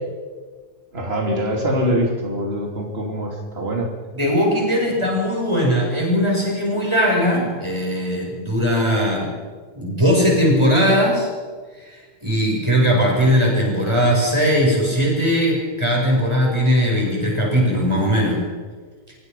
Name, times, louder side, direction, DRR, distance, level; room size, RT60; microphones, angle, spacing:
voice 1, 0.9-3.9, equal, 30° right, 1 dB, 3.4 m, -23 dB
voice 2, 4.1-9.3 9.8-11.3 11.8-18.4, equal, 15° right, -2 dB, 8.0 m, -19 dB
26.0 x 24.0 x 5.7 m, 1.5 s
omnidirectional pair, 2.0 m